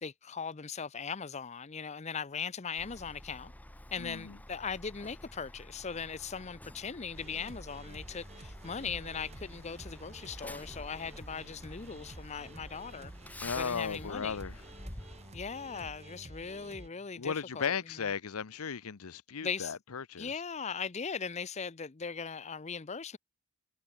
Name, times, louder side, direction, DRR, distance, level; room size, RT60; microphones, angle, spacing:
voice 1, 0.0-3.5 3.9-13.1 13.5-14.4 15.3-17.7 19.4-19.7 20.2-23.2, left 6 dB, 30° left, 0.6 m, -39 dB
Truck, 2.8-15.9, left 1 dB, 5° left, 1.0 m, -50 dB
voice 2, 4.0-4.4 13.4-14.6 17.1-20.4, left 6 dB, 80° left, 0.7 m, -36 dB
sound 1, 7.1-16.9, right 1 dB, 30° right, 1.3 m, -50 dB
sound 2, 12.4-17.5, left 1 dB, 50° left, 3.6 m, -67 dB
head